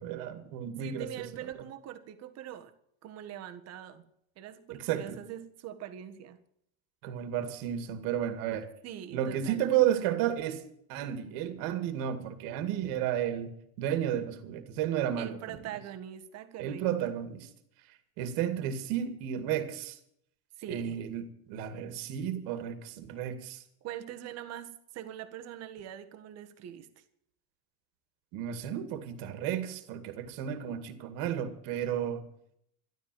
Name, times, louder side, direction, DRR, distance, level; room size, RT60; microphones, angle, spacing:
voice 1, 0.0-1.5 4.8-5.2 7.0-8.7 9.1-10.6 10.9-13.5 13.8-15.6 16.6-17.5 18.2-20.0 20.7-23.6 28.3-32.2, right 10 dB, 50° right, 2.3 m, -32 dB
voice 2, 0.8-2.7 3.0-4.0 4.4-6.4 8.8-9.6 15.2-17.1 20.6-21.0 23.8-26.9, right 10 dB, 35° right, 1.7 m, -43 dB
13.5 x 12.0 x 7.8 m
supercardioid pair, 160°, 42 cm